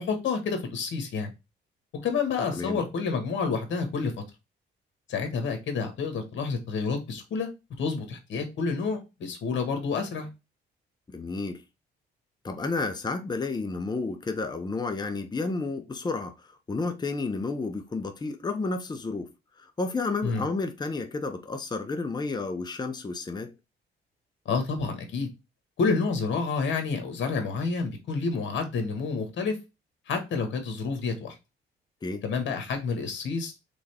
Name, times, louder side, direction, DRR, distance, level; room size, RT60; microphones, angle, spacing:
voice 1, 0.0-1.3 1.9-4.1 5.1-7.5 7.8-10.3 20.2-20.4 24.4-25.3 25.8-29.6 30.1-31.3 32.2-33.5, left 4 dB, 70° left, 1.5 m, -29 dB
voice 2, 11.1-11.6 12.4-16.3 16.7-19.3 19.6-23.5 32.0-32.2, left 3 dB, 20° left, 0.7 m, -31 dB
3.9 x 3.5 x 3.3 m
cardioid pair, 90°, 20 cm